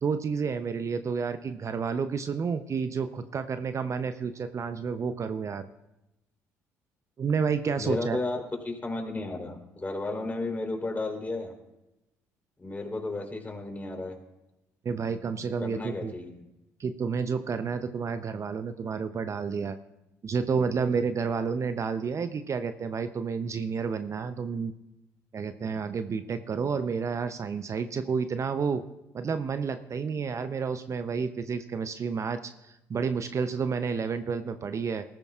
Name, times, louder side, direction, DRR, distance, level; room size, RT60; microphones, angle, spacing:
voice 1, 0.0-5.6 7.2-8.2 14.8-16.1 16.8-19.8 20.2-24.7 25.3-28.8 29.1-35.0, right 5 dB, 40° right, 10 dB, 0.7 m, -30 dB
voice 2, 7.8-11.5 12.6-14.2 15.6-16.5, left 2 dB, 20° left, 1 dB, 3.6 m, -33 dB
20.5 x 13.5 x 2.4 m, 0.93 s
hypercardioid pair, 55°, 8 cm